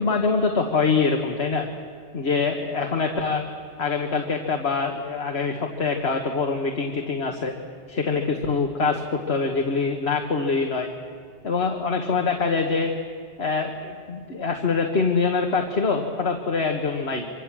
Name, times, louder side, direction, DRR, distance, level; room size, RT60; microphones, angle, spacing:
voice 1, 0.0-1.7 2.1-3.5 3.8-7.5 7.9-10.9 11.4-12.9 13.4-17.3, left 4 dB, 75° left, 2 dB, 1.8 m, -24 dB
26.0 x 24.5 x 7.5 m, 2.1 s
omnidirectional pair, 1.1 m